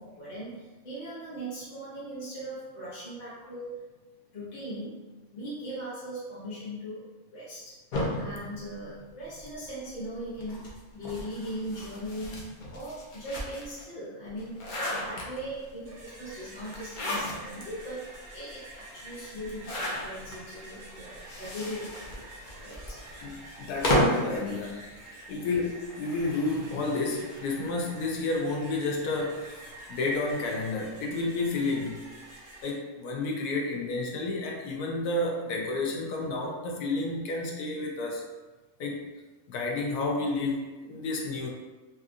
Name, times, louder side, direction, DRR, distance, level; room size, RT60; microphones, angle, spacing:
voice 1, 0.0-3.7 4.3-4.9 5.3-7.0 7.3-7.7 8.1-10.6 10.9-12.4 12.7-22.1 22.6-23.0, equal, 35° left, -10 dB, 0.8 m, -39 dB
sound 1, 7.9-9.5 10.4-13.8 14.3-15.7 16.7-17.6 18.1-18.2 18.4-18.5 19.4-20.4 21.1-24.3, equal, 60° left, 0.5 m, -32 dB
sound 2, 15.8-32.7, right 1 dB, 40° right, 0.7 m, -48 dB
voice 2, 23.2-24.9 25.3-29.6 29.9-32.0 32.6-38.2 38.8-39.0 39.5-41.5, left 3 dB, 80° left, -1 dB, 1.1 m, -31 dB
3.4 x 2.7 x 2.4 m, 1.2 s
omnidirectional pair, 1.6 m